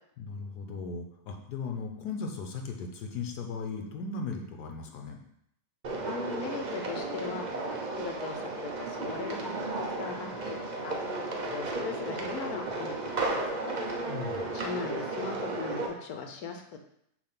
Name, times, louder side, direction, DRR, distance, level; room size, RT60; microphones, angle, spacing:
voice 1, 0.2-5.2 14.1-14.6, left 4 dB, 85° left, 3 dB, 1.4 m, -37 dB
sound 1, 5.8-15.9, right 2 dB, 45° right, 0.6 m, -34 dB
voice 2, 6.0-7.5 7.9-10.6 10.8-11.0 11.4-13.8 14.5-16.6, left 5 dB, 70° left, 4 dB, 1.2 m, -39 dB
Wind instrument woodwind instrument, 9.5-14.0, left 6 dB, 25° right, 1.9 m, -49 dB
7.1 x 2.9 x 5.9 m, 0.73 s
omnidirectional pair, 1.7 m